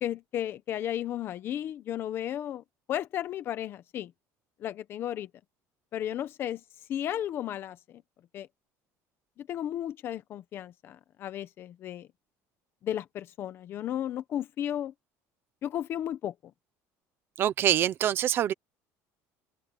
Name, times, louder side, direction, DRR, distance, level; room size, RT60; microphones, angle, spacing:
voice 1, 0.0-4.1 4.6-5.3 5.9-6.6 6.9-8.0 8.3-8.5 9.4-12.1 12.8-14.9 15.6-16.3, left 11 dB, 35° left, 1.2 m, -34 dB
voice 2, 17.4-18.5, right 11 dB, 35° right, 1.0 m, -25 dB
open air
cardioid pair, 180°, 7 cm